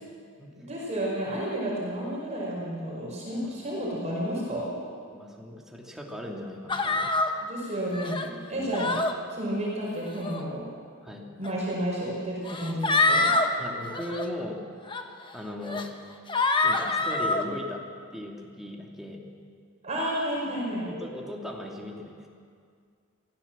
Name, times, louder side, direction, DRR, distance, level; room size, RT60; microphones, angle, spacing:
voice 1, 0.6-4.7 7.4-8.9 9.3-10.6 11.4-13.3 19.8-20.9, right 1 dB, 35° right, -4 dB, 5.0 m, -31 dB
voice 2, 5.1-7.1 8.5-8.8 11.0-11.3 13.6-14.6 15.3-15.9 16.6-17.8 18.1-19.3 20.3-20.6 20.9-22.3, left 1 dB, ahead, -2 dB, 2.8 m, -38 dB
sound 1, 6.7-7.3 7.9-8.3 8.7-9.1 10.0-10.4 11.4-11.5 12.5-13.5 13.9-14.2 14.9-15.0 15.6-15.9 16.3-17.4, left 3 dB, 25° left, 1.2 m, -25 dB
24.0 x 16.0 x 7.4 m, 2.2 s
head